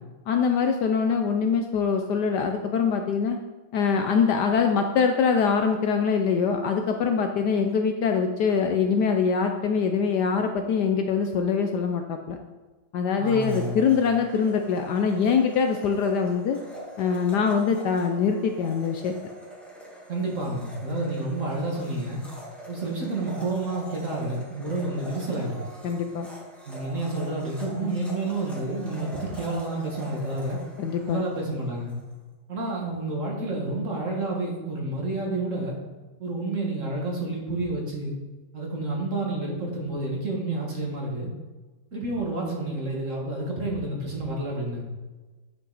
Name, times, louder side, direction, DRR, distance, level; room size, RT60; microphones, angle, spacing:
voice 1, 0.3-3.4 3.7-12.4 12.9-16.6 17.0-19.1 25.8-26.3 30.8-31.2, left 6 dB, 70° left, 5 dB, 1.1 m, -23 dB
Domestic sounds home sounds, 13.2-32.0, right 1 dB, ahead, 1.4 m, -43 dB
voice 2, 13.2-13.9 20.1-22.2 22.7-25.6 26.6-30.6 31.1-31.9 32.5-35.8 36.2-38.2 38.5-41.3 41.9-44.8, right 2 dB, 40° right, -1 dB, 1.8 m, -29 dB
9.8 x 5.5 x 4.0 m, 1.2 s
omnidirectional pair, 2.1 m